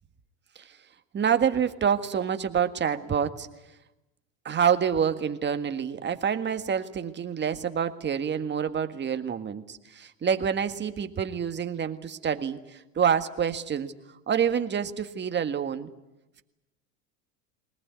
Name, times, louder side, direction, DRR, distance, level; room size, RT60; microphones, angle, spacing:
voice 1, 1.1-3.5 4.4-13.9 14.3-15.9, right 7 dB, 25° right, 9 dB, 1.7 m, -27 dB
21.5 x 19.5 x 9.6 m, 0.95 s
supercardioid pair, 100°, 39 cm